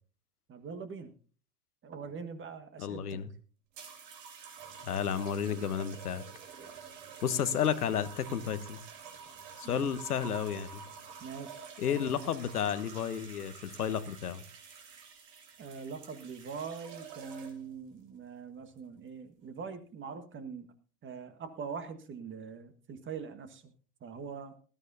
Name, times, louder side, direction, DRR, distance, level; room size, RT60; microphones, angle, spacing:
voice 1, 0.5-1.1 1.8-3.2 9.6-9.9 11.2-11.7 15.6-20.7 21.0-23.6 24.0-24.6, right 5 dB, 25° right, 10 dB, 1.6 m, -43 dB
voice 2, 2.8-3.3 4.8-6.2 7.2-8.8 9.6-10.8 11.8-14.4, left 8 dB, 80° left, 12 dB, 1.1 m, -32 dB
sound 1, 3.7-17.8 18.6-19.0, right 6 dB, 55° right, 3.6 m, -49 dB
19.5 x 13.0 x 2.7 m, 0.40 s
figure-of-eight pair, 90°, 45 cm